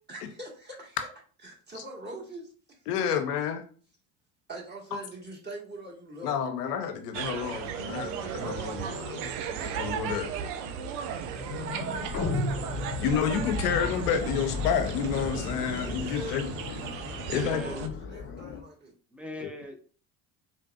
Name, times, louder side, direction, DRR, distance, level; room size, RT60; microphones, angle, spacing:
voice 1, 0.1-1.0 1.4-2.8 4.5-6.5 10.7-14.0 15.9-16.5 17.3-18.9, right 1 dB, 20° right, -3 dB, 1.6 m, -44 dB
voice 2, 2.9-3.6 6.2-9.3 9.6-10.3 13.0-16.8 17.3-17.9, left 7 dB, 85° left, 7 dB, 0.6 m, -30 dB
sound 1, 7.1-17.9, right 8 dB, 70° right, 0.5 m, -36 dB
sound 2, 10.3-18.6, left 5 dB, 30° left, 0.4 m, -37 dB
sound 3, 12.1-13.6, left 2 dB, 45° left, 0.9 m, -32 dB
voice 3, 17.2-17.8 19.1-19.8, equal, 5° right, 4 dB, 0.8 m, -40 dB
3.7 x 2.5 x 2.4 m, 0.41 s
hypercardioid pair, 60°, 46 cm